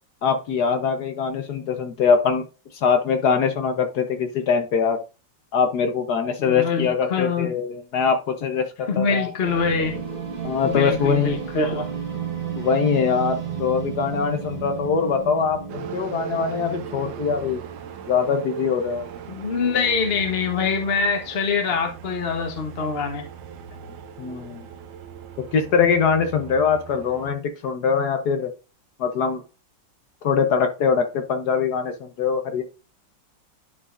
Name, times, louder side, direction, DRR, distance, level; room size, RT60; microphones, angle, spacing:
voice 1, 0.2-2.4 2.8-5.0 5.5-9.3 10.4-11.4 12.6-17.6 18.1-19.1 24.2-24.6 25.5-28.5 29.0-29.4 30.2-32.6, left 6 dB, 65° left, 1.3 m, -22 dB
voice 2, 6.4-7.5 8.9-10.0 10.6-11.9 19.3-23.3, left 5 dB, 40° left, 1.1 m, -24 dB
sound 1, 9.4-18.0, right 7 dB, 30° right, 1.5 m, -33 dB
sound 2, 15.7-27.3, right 8 dB, 80° right, 1.5 m, -38 dB
11.0 x 4.9 x 2.5 m
omnidirectional pair, 2.0 m